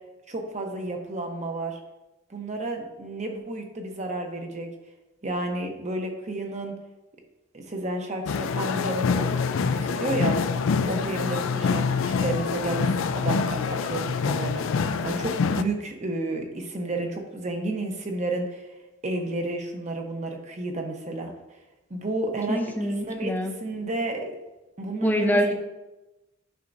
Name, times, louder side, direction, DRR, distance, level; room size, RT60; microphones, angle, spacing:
voice 1, 0.3-1.8 2.3-4.7 5.2-6.8 7.5-9.4 9.7-10.4 10.9-18.7 19.0-21.3 21.9-22.7 23.1-23.3 23.6-24.3 24.8-25.4, right 2 dB, 35° right, 3 dB, 0.9 m, -31 dB
sound 1, 8.3-15.6, left 5 dB, 80° left, 0.4 m, -26 dB
voice 2, 22.5-23.5 25.0-25.5, equal, 10° left, 4 dB, 0.6 m, -25 dB
10.0 x 5.8 x 2.6 m, 1.0 s
head